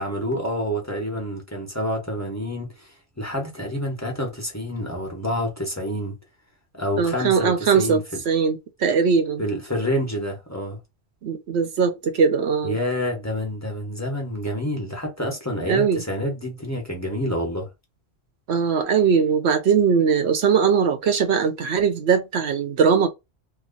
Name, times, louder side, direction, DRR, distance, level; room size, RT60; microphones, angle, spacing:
voice 1, 0.0-6.2 6.7-8.2 9.4-10.8 12.6-17.7, equal, 15° left, 1.0 m, -28 dB
voice 2, 7.0-9.4 11.2-12.8 15.7-16.0 18.5-23.1, right 6 dB, 70° right, 0.9 m, -20 dB
2.9 x 2.2 x 3.7 m
omnidirectional pair, 1.2 m